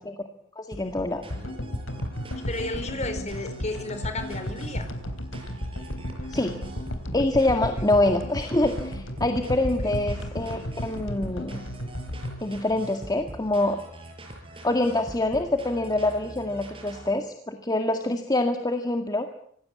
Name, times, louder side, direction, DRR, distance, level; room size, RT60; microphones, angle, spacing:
voice 1, 0.6-1.2 6.3-6.6 7.1-11.6 12.4-13.8 14.6-19.3, left 2 dB, 20° left, 6 dB, 1.9 m, -25 dB
sound 1, 0.7-17.1, right 1 dB, 25° right, 6.9 m, -43 dB
sound 2, 1.3-13.6, equal, 70° left, 3.6 m, -34 dB
voice 2, 2.4-4.9 7.7-7.8 9.8-10.3, left 2 dB, 35° left, 9 dB, 4.5 m, -33 dB
26.0 x 20.0 x 8.5 m, 0.66 s
head